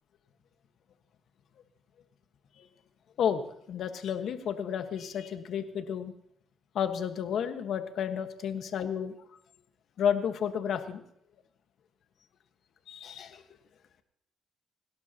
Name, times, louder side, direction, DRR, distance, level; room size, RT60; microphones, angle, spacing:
voice 1, 3.7-6.1 6.7-9.1 10.0-11.0 12.9-13.4, left 8 dB, 70° left, 8 dB, 1.3 m, -31 dB
28.5 x 12.0 x 2.9 m, 0.73 s
cardioid pair, 100°, 0 cm